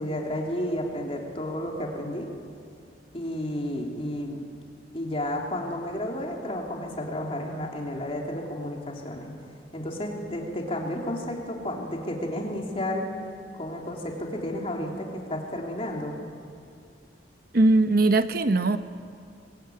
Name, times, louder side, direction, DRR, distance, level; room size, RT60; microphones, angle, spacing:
voice 1, 0.0-2.3 3.1-4.4 4.9-9.3 9.7-13.1 13.5-16.1, left 1 dB, 35° left, 0 dB, 3.4 m, -32 dB
voice 2, 17.5-18.8, right 2 dB, 55° right, 10 dB, 0.9 m, -20 dB
22.5 x 22.0 x 9.5 m, 2.3 s
head